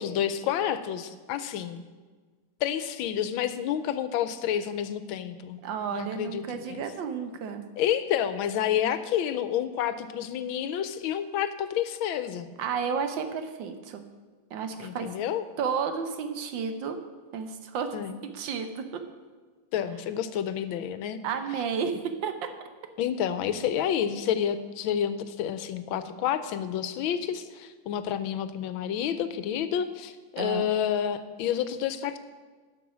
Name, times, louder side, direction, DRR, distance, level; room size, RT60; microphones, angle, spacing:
voice 1, 0.0-1.8 2.6-5.6 5.9-6.8 7.8-12.5 14.8-15.4 17.9-18.2 19.7-21.2 23.0-32.2, left 9 dB, 80° left, 12 dB, 1.4 m, -29 dB
voice 2, 5.6-7.6 12.6-14.0 14.5-15.1 15.6-17.0 17.3-17.9 18.3-19.0 21.2-22.3 30.4-30.7, right 6 dB, 70° right, 8 dB, 1.5 m, -32 dB
11.0 x 6.2 x 6.1 m, 1.4 s
omnidirectional pair, 2.2 m